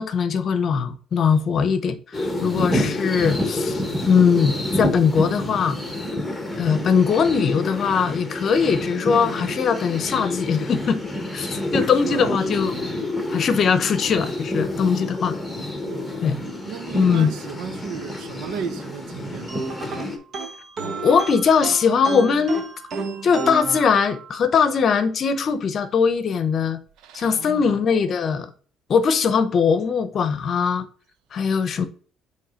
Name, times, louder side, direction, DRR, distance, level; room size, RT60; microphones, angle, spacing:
voice 1, 0.0-5.8 6.6-11.0 11.3-12.8 13.3-15.4 16.2-16.4 16.9-17.3 21.0-22.7 23.2-26.8 27.1-28.5 28.9-30.9 31.3-31.9, left 6 dB, 40° left, 0.8 m, -20 dB
sound 1, 2.1-20.2, left 1 dB, 5° left, 1.2 m, -28 dB
voice 2, 11.9-12.6 15.8-16.2 16.6-19.7 27.0-27.8, right 7 dB, 75° right, 0.7 m, -34 dB
sound 2, 19.5-24.5, right 4 dB, 45° right, 0.9 m, -32 dB
7.2 x 3.2 x 5.0 m
cardioid pair, 155°, 0 cm